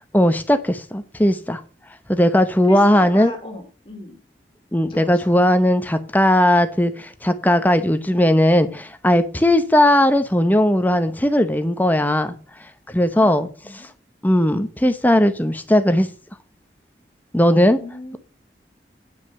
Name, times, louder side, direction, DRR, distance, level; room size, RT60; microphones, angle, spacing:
voice 1, 0.1-1.6 2.1-3.3 4.7-12.3 12.9-13.5 13.8-13.9 14.2-16.1 17.3-17.8, left 1 dB, 10° left, 0.8 m, -17 dB
voice 2, 2.7-4.2 4.9-5.2 13.1-13.3 13.6-13.9 17.7-18.2, left 1 dB, 30° left, 2.5 m, -36 dB
9.8 x 5.8 x 6.9 m
head